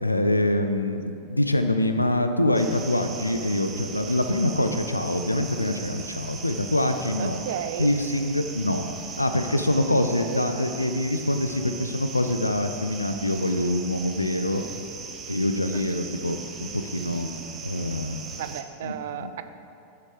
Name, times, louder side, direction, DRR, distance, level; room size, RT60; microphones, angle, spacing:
voice 1, 0.0-7.4 7.8-8.9 9.2-14.6 15.3-17.3 17.6-18.4 18.8-19.3, left 1 dB, 85° left, 7 dB, 0.5 m, -25 dB
sound 1, 2.5-18.6, right 5 dB, 25° right, 0.9 m, -39 dB
voice 2, 7.2-7.9 10.1-10.5 18.4-19.4, right 10 dB, 55° right, 10 dB, 0.5 m, -33 dB
11.0 x 5.8 x 5.0 m, 2.7 s
figure-of-eight pair, 90°, 0 cm